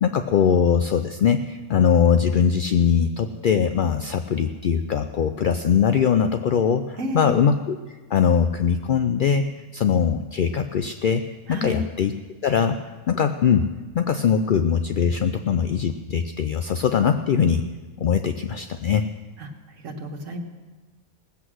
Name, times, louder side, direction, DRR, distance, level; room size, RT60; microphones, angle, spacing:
voice 1, 0.0-11.2 11.5-12.1 12.4-12.8 13.1-13.7 13.9-17.6 18.0-19.1, left 7 dB, 65° left, 8 dB, 0.5 m, -21 dB
voice 2, 7.0-7.4 11.5-11.9 19.4-19.5 19.8-20.4, equal, 70° right, 2 dB, 1.8 m, -31 dB
19.0 x 8.1 x 6.3 m, 1.3 s
omnidirectional pair, 1.4 m